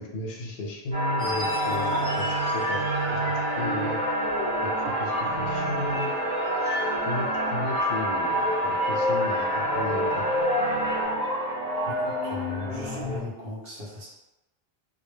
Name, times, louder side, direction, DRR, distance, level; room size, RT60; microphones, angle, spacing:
voice 1, 0.0-3.2 3.6-4.0 4.6-4.7 5.0-6.1 7.0-10.3, left 2 dB, 60° left, -1 dB, 0.7 m, -34 dB
sound 1, 0.9-11.1, equal, 10° right, 1.1 m, -29 dB
sound 2, 1.2-13.2, equal, 40° right, 0.9 m, -29 dB
voice 2, 11.9-14.1, left 2 dB, 70° right, -5 dB, 0.9 m, -38 dB
2.1 x 2.0 x 3.3 m, 0.96 s
omnidirectional pair, 1.0 m